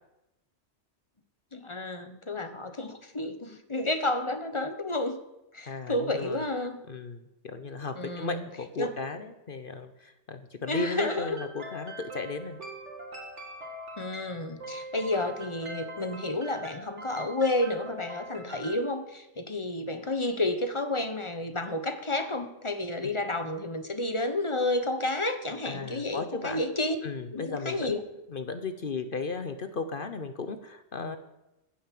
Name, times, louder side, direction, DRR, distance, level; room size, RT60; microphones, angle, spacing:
voice 1, 1.5-5.2 5.5-6.8 8.0-8.5 8.8-8.9 10.7-11.4 14.0-27.0 27.3-28.0, left 2 dB, 25° left, 9 dB, 1.1 m, -31 dB
voice 2, 5.7-6.4 6.9-12.6 23.0-23.1 25.6-26.6 27.0-28.0 28.3-31.2, left 4 dB, 50° left, 9 dB, 1.0 m, -35 dB
sound 1, 10.7-18.8, right 1 dB, 80° right, 2.6 m, -42 dB
15.0 x 8.5 x 7.6 m, 0.93 s
omnidirectional pair, 1.2 m